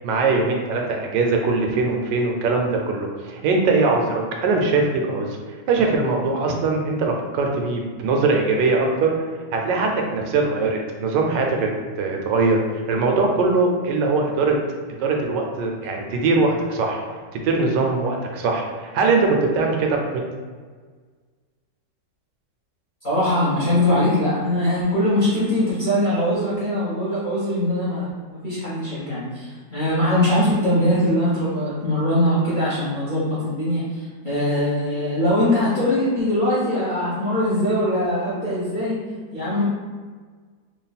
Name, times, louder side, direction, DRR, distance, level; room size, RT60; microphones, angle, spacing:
voice 1, 0.0-5.3 5.7-9.1 9.5-11.7 12.0-12.6 12.9-14.6 15.0-17.0 17.3-20.2, right 3 dB, 80° right, 1 dB, 1.2 m, -21 dB
voice 2, 23.0-39.0 39.3-39.6, left 1 dB, 40° left, -10 dB, 0.8 m, -21 dB
3.3 x 2.4 x 4.0 m, 1.5 s
omnidirectional pair, 1.9 m